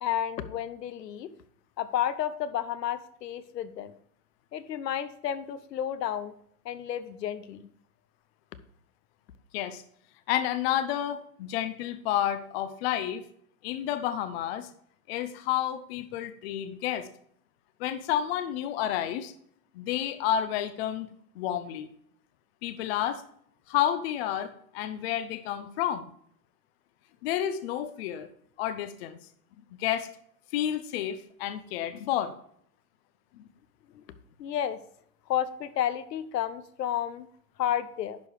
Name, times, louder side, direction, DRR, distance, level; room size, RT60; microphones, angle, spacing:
voice 1, 0.0-1.3 1.8-3.9 4.5-6.3 6.6-7.7 33.9-34.0 34.4-34.8 35.3-37.3 37.6-38.2, left 10 dB, 75° left, 13 dB, 1.0 m, -31 dB
voice 2, 10.3-13.2 13.6-14.7 15.1-17.1 17.8-19.3 19.7-21.1 21.4-21.9 22.6-23.2 23.7-26.1 27.2-28.3 28.6-29.2 29.8-30.1 30.5-32.3 33.3-33.4, left 11 dB, 40° left, 11 dB, 0.7 m, -30 dB
10.5 x 4.7 x 4.9 m, 0.65 s
hypercardioid pair, 140°, 49 cm